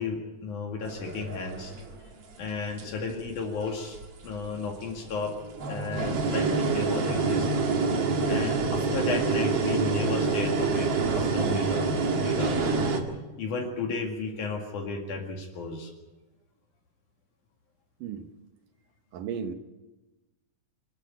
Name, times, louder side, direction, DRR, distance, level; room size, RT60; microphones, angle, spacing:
voice 1, 0.0-1.7 2.4-4.0 4.2-5.3 5.7-7.5 8.3-10.9 11.1-12.7 13.4-15.9, left 4 dB, 70° left, 3.6 m, -33 dB
sound 1, 0.8-2.2 2.8-3.3 4.0-4.5 5.1-13.0, right 4 dB, 50° right, 2.7 m, -27 dB
voice 2, 19.1-19.5, right 7 dB, 90° right, 2.9 m, -34 dB
25.0 x 12.5 x 8.7 m
omnidirectional pair, 3.6 m